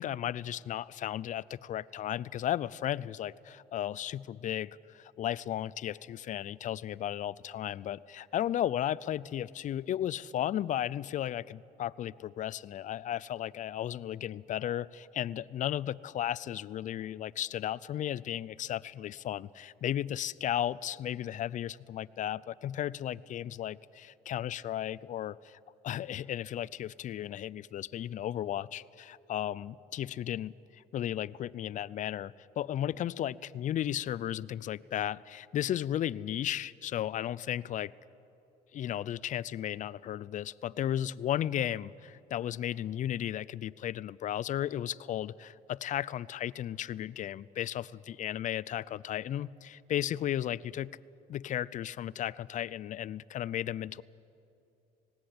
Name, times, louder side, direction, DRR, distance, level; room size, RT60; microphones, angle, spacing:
voice 1, 0.0-25.6 25.8-37.9 38.7-50.9 51.3-54.0, left 11 dB, 50° left, 19 dB, 0.5 m, -35 dB
19.0 x 18.0 x 8.6 m, 2.7 s
cardioid pair, 110°, 17 cm